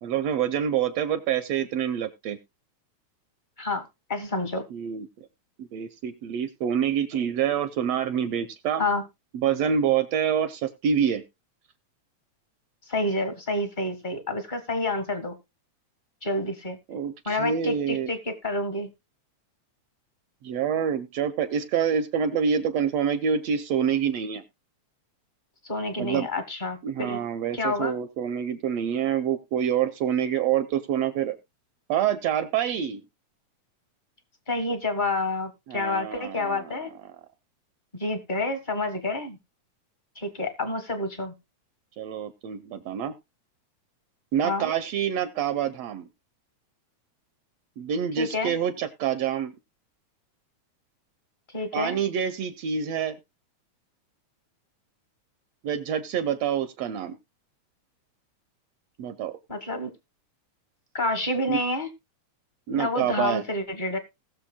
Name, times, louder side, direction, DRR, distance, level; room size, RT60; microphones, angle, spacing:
voice 1, 0.0-2.4 4.7-5.1 5.6-8.8 9.3-11.2 16.9-18.1 20.4-24.4 26.0-26.3 26.8-31.4 31.9-33.0 35.7-36.7 42.0-43.1 44.3-46.0 47.8-49.5 51.7-53.2 55.6-57.2 59.0-59.3 61.5-61.6 62.7-63.4, right 8 dB, 75° right, 12 dB, 1.6 m, -26 dB
voice 2, 4.1-4.6 8.8-9.0 12.9-15.3 16.2-16.8 17.2-18.9 25.6-27.2 27.5-27.9 34.5-36.9 37.9-39.4 40.1-41.3 44.4-44.7 48.2-48.6 51.5-52.0 59.5-59.9 60.9-61.9 62.7-64.0, left 2 dB, 35° left, 9 dB, 0.8 m, -28 dB
19.5 x 6.7 x 2.2 m, 0.23 s
omnidirectional pair, 3.3 m